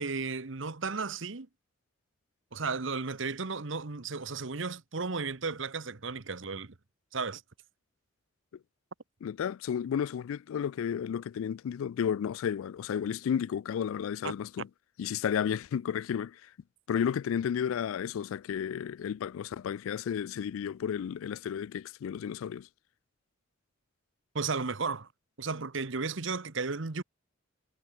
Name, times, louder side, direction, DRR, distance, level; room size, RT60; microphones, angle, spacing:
voice 1, 0.0-1.5 2.5-6.7 7.1-7.4 14.2-14.3 24.3-25.1 25.4-27.0, right 4 dB, 65° right, 1.1 m, -34 dB
voice 2, 9.2-14.7 15.0-16.5 16.9-22.7, left 8 dB, 80° left, 0.3 m, -32 dB
head